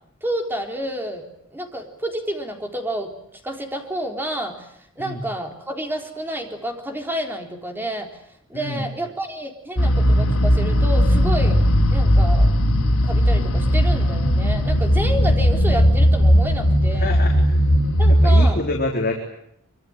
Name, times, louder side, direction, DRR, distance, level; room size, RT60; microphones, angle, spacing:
voice 1, 0.2-8.1 8.5-11.6 11.9-12.5 13.0-17.2 18.0-18.6, right 1 dB, 10° right, 4 dB, 3.8 m, -29 dB
voice 2, 8.5-8.8 17.0-17.3 18.2-19.1, left 2 dB, 45° left, 0 dB, 4.0 m, -26 dB
sound 1, 9.8-18.5, equal, 85° left, 3.7 m, -17 dB
25.0 x 25.0 x 8.9 m, 0.73 s
head